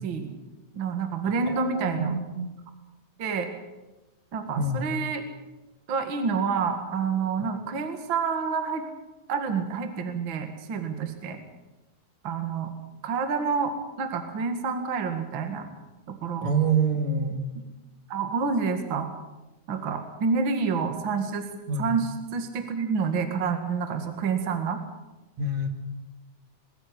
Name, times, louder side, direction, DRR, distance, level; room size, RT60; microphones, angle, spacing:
voice 1, 0.7-2.2 3.2-3.5 4.3-5.2 5.9-8.8 9.3-11.4 12.2-12.7 13.0-15.6 16.1-16.5 18.1-19.1 19.7-21.5 21.8-24.8, right 5 dB, 45° right, 7 dB, 2.4 m, -28 dB
voice 2, 1.4-2.5 4.6-4.8 16.4-17.4 21.7-22.0 25.4-25.7, right 3 dB, 60° right, 6 dB, 3.2 m, -26 dB
21.5 x 14.0 x 9.9 m, 1.1 s
omnidirectional pair, 3.6 m